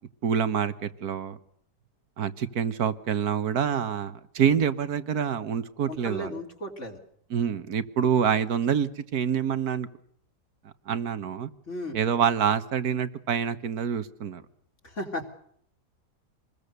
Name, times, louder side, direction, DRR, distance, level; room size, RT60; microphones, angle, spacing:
voice 1, 0.2-1.4 2.2-6.4 7.3-9.9 10.9-11.5 11.9-14.4, right 8 dB, 65° right, 12 dB, 1.7 m, -26 dB
voice 2, 5.9-7.0 11.7-12.0 14.8-15.2, left 1 dB, 45° left, 2 dB, 3.6 m, -35 dB
26.5 x 21.0 x 6.7 m, 0.67 s
omnidirectional pair, 1.8 m